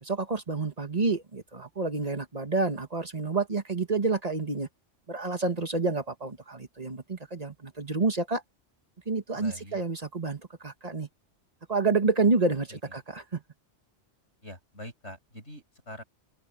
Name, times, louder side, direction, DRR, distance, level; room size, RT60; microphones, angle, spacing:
voice 1, 0.0-4.7 5.1-8.4 9.1-11.1 11.7-13.4, right 3 dB, 35° right, 1.8 m, -29 dB
voice 2, 9.3-9.8 12.7-12.8 14.4-16.0, left 1 dB, 70° left, 7.5 m, -44 dB
open air
omnidirectional pair, 1.2 m